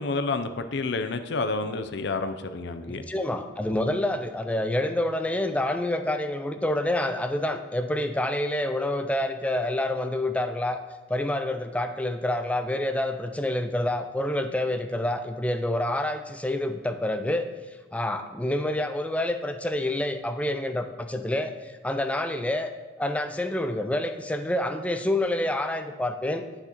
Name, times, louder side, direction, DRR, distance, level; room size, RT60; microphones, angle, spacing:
voice 1, 0.0-3.0, left 3 dB, 65° left, 9 dB, 0.5 m, -29 dB
voice 2, 2.9-10.8 11.1-17.5 17.9-22.7 23.0-26.5, left 1 dB, 5° left, 7 dB, 0.3 m, -27 dB
9.6 x 6.6 x 3.0 m, 1.3 s
head